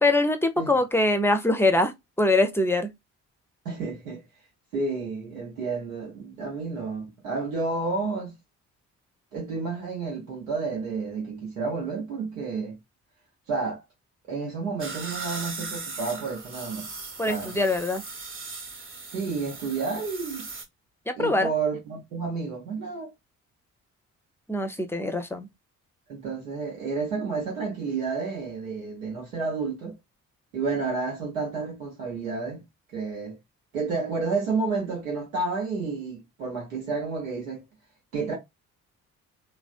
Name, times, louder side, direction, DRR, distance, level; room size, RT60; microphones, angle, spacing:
voice 1, 0.0-1.9 2.2-2.9 17.2-18.0 21.1-21.5 24.5-25.5, left 2 dB, 5° left, 0.6 m, -23 dB
voice 2, 3.6-4.2 4.7-8.3 9.3-12.8 13.5-13.8 14.3-16.9 17.3-17.6 19.1-20.4 21.2-23.1 26.1-30.0 30.5-32.6 32.9-33.4 33.7-37.6 38.1-38.3, right 4 dB, 80° right, 0.9 m, -30 dB
sound 1, 14.8-20.6, right 4 dB, 30° right, 1.0 m, -38 dB
3.3 x 2.1 x 2.4 m
figure-of-eight pair, 40°, 40 cm